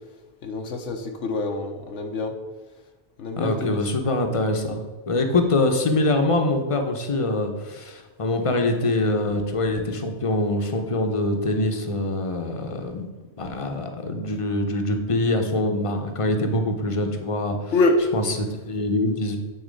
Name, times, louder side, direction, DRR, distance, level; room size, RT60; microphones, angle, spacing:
voice 1, 0.4-2.3 3.2-3.8 17.7-18.0, left 2 dB, 85° left, 3 dB, 1.1 m, -25 dB
voice 2, 3.4-13.1 13.4-17.7 18.1-19.4, left 2 dB, 30° left, 5 dB, 0.8 m, -24 dB
8.6 x 4.0 x 5.2 m, 1.3 s
omnidirectional pair, 1.2 m